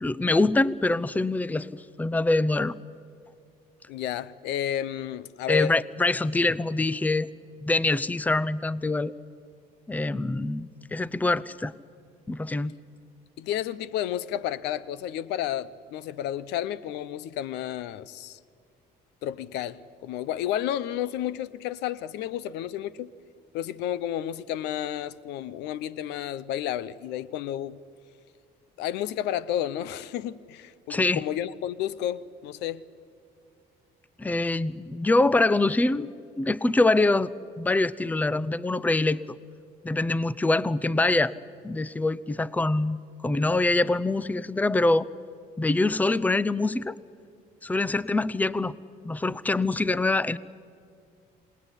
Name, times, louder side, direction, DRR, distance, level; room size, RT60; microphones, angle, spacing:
voice 1, 0.0-2.7 5.5-7.3 7.6-9.1 9.9-11.7 12.3-12.7 30.9-31.2 34.2-36.1 36.4-37.3 37.6-39.2 39.8-41.3 41.6-43.0 43.2-45.1 45.6-47.0 47.6-48.8 49.0-50.4, left 2 dB, 10° left, 0.6 m, -24 dB
voice 2, 3.9-5.7 13.4-18.4 19.2-23.1 23.5-27.8 28.8-32.8, left 11 dB, 90° left, 0.8 m, -31 dB
27.0 x 19.5 x 10.0 m
cardioid pair, 110°, 17 cm